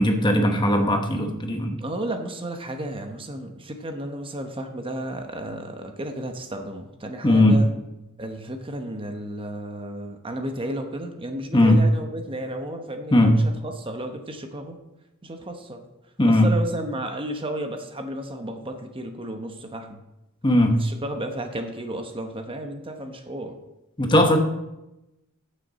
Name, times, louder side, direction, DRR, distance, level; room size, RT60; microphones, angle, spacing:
voice 1, 0.0-1.8 7.2-7.6 11.5-11.8 13.1-13.3 16.2-16.5 20.4-20.8 24.0-24.4, left 1 dB, 20° left, 4 dB, 1.1 m, -18 dB
voice 2, 1.8-7.7 8.2-14.8 15.2-15.9 16.2-20.0 20.8-23.6, right 1 dB, 25° right, 5 dB, 0.9 m, -33 dB
15.0 x 6.6 x 4.1 m, 0.94 s
head